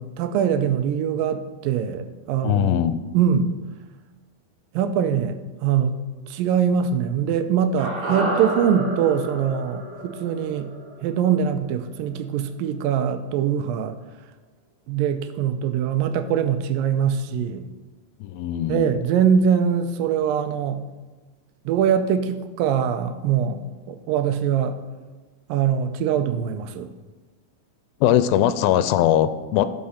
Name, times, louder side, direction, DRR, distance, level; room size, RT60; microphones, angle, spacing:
voice 1, 0.0-2.8 3.1-3.5 4.7-6.0 6.3-10.7 11.0-14.0 14.9-17.7 18.7-20.8 21.7-23.6 23.9-24.8 25.5-26.9, right 8 dB, 80° right, 9 dB, 2.2 m, -23 dB
voice 2, 2.4-3.0 18.2-19.0 28.0-29.7, left 11 dB, 85° left, 12 dB, 2.4 m, -20 dB
sound 1, 7.8-12.1 12.4-12.5, right 1 dB, 45° right, 2.8 m, -30 dB
11.0 x 5.8 x 5.7 m, 1.2 s
omnidirectional pair, 4.2 m